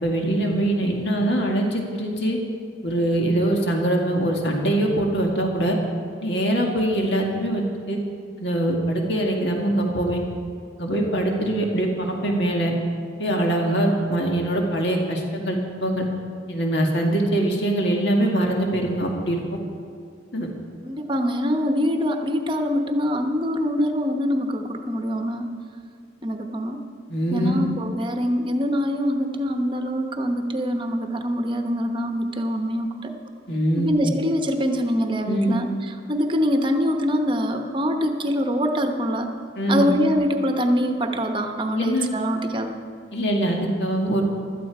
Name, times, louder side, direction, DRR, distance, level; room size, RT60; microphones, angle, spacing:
voice 1, 0.0-2.4 2.8-5.8 6.2-8.0 8.4-10.2 10.8-12.8 13.2-16.1 16.5-19.4 20.3-20.5 27.1-27.6 33.5-34.1 35.2-35.6 39.6-39.9 41.7-42.1 43.1-44.2, right 1 dB, 65° left, 0 dB, 2.0 m, -23 dB
voice 2, 20.8-25.6 26.2-26.8 27.3-33.1 33.8-35.7 36.1-39.3 39.7-42.7, equal, 25° right, 5 dB, 1.0 m, -24 dB
16.5 x 13.0 x 4.8 m, 2.3 s
head